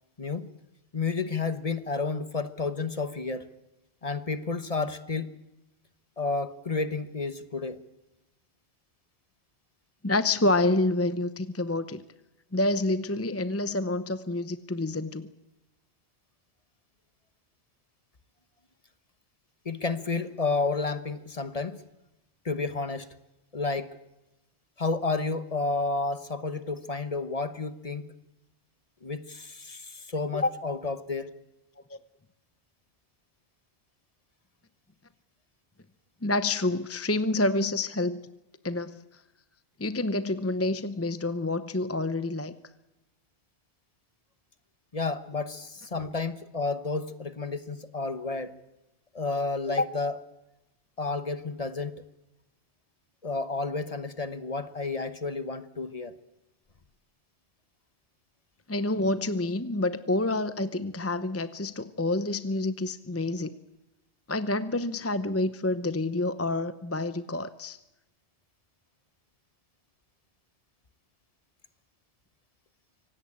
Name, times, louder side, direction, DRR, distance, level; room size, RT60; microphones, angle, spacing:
voice 1, 0.2-0.5 0.9-3.5 4.0-5.3 6.2-7.8 19.6-21.8 22.4-23.1 23.5-24.0 24.8-28.1 29.0-31.3 44.9-48.5 49.1-50.2 51.0-51.9 53.2-56.1, left 3 dB, 35° left, 12 dB, 1.2 m, -31 dB
voice 2, 10.0-12.0 12.5-15.3 31.9-32.0 36.2-38.2 38.6-39.0 39.8-42.5 58.7-63.6 64.3-67.8, left 2 dB, 15° left, 13 dB, 0.7 m, -28 dB
25.0 x 17.5 x 8.8 m, 0.95 s
omnidirectional pair, 1.1 m